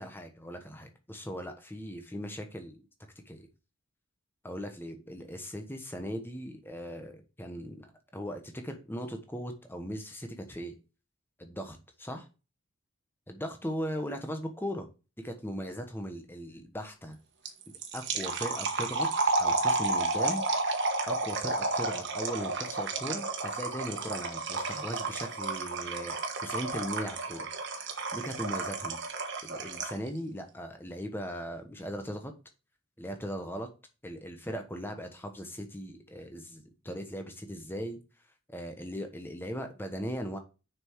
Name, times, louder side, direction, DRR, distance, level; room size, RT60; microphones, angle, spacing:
voice 1, 0.0-2.8 3.3-3.5 4.4-10.7 11.4-12.3 13.3-14.9 15.2-17.2 17.9-19.1 19.4-20.4 21.1-27.5 28.1-29.0 29.4-32.3 33.0-33.7 34.0-38.0 38.5-40.4, equal, 10° left, 5 dB, 1.2 m, -38 dB
sound 1, 17.5-30.1, right 3 dB, 55° right, 1.4 m, -31 dB
6.8 x 5.8 x 4.6 m, 0.32 s
head